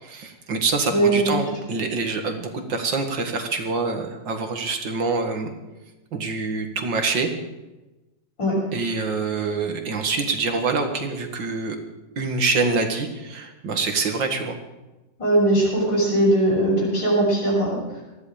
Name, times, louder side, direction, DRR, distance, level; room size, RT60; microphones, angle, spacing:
voice 1, 0.0-5.5 6.1-7.3 8.7-11.8 12.2-14.6, right 4 dB, 85° right, 5 dB, 2.5 m, -25 dB
voice 2, 0.9-1.4 8.4-8.6 15.2-17.8, right 1 dB, 80° left, -3 dB, 7.3 m, -20 dB
19.0 x 14.0 x 5.1 m, 1.1 s
omnidirectional pair, 1.9 m